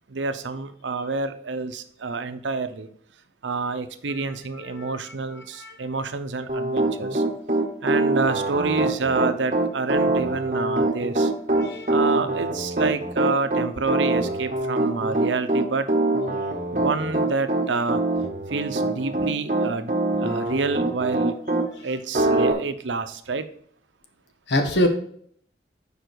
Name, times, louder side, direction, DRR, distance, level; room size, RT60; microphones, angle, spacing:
voice 1, 0.1-2.9 3.4-7.2 7.8-11.3 11.9-15.9 16.7-18.0 18.5-19.9 20.2-21.4 21.8-23.5, right 4 dB, 90° right, 10 dB, 0.7 m, -28 dB
voice 2, 4.6-5.8 11.6-11.9 21.7-21.9 24.5-24.9, left 1 dB, 80° left, 5 dB, 1.2 m, -26 dB
Piano, 6.5-21.7 22.1-22.5, right 2 dB, 40° right, 0.9 m, -23 dB
6.9 x 5.0 x 4.7 m, 0.62 s
head